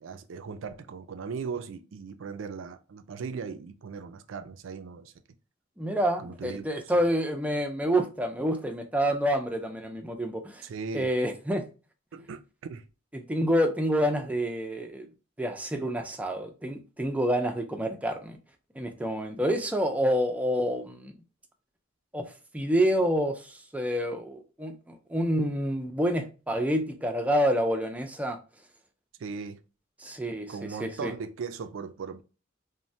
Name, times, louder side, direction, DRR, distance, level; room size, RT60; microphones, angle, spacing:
voice 1, 0.0-5.1 6.2-6.7 10.6-11.1 12.1-12.4 12.7-12.8 29.2-29.6 30.5-32.2, right 5 dB, 70° right, 0.4 m, -38 dB
voice 2, 5.8-10.6 10.9-11.6 13.1-15.1 15.4-18.4 18.8-21.1 22.1-22.3 22.5-28.4 30.0-30.5 30.8-31.1, equal, 5° right, 0.4 m, -28 dB
3.1 x 2.1 x 2.7 m
head